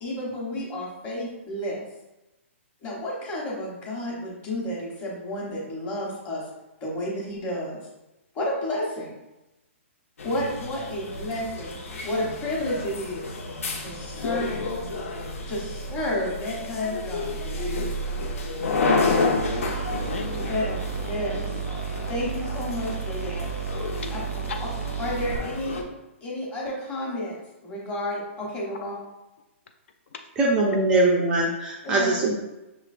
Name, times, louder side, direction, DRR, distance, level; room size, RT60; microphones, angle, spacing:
voice 1, 0.0-1.8 2.8-6.4 6.8-7.8 8.3-9.1 10.2-11.8 12.0-13.3 13.8-14.4 15.5-17.4 20.2-20.8 21.1-21.5 22.1-23.5 24.1-24.5 25.0-25.8 26.2-28.9 31.8-32.2, left 1 dB, 15° left, -4 dB, 1.0 m, -31 dB
sound 1, 10.2-25.8, left 3 dB, 85° left, 0.8 m, -30 dB
voice 2, 14.2-15.1 18.1-18.3 18.9-20.8 24.0-24.1 24.4-24.6 30.1-30.2, left 5 dB, 60° left, 5 dB, 0.4 m, -36 dB
sound 2, 19.4-25.4, right 7 dB, 80° right, 0.5 m, -32 dB
voice 3, 30.4-32.3, right 2 dB, 10° right, -2 dB, 0.3 m, -22 dB
6.0 x 3.2 x 2.5 m, 0.98 s
hypercardioid pair, 165°, 7 cm